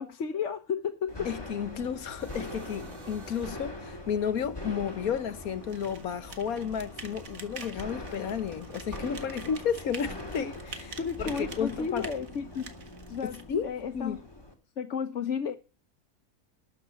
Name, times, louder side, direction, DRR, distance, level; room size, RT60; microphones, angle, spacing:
voice 1, 0.0-1.3 11.0-12.7 13.1-14.2 14.8-15.6, left 6 dB, 60° left, 1.3 m, -33 dB
sound 1, 1.1-14.5, left 1 dB, 15° left, 2.7 m, -42 dB
voice 2, 1.2-12.1 13.2-14.2, left 7 dB, 80° left, 1.6 m, -32 dB
sound 2, 2.2-3.9 4.4-4.5 4.8-11.0, right 2 dB, 55° right, 3.3 m, -51 dB
sound 3, 5.7-13.4, right 5 dB, 70° right, 2.0 m, -47 dB
12.5 x 7.8 x 7.1 m
omnidirectional pair, 1.5 m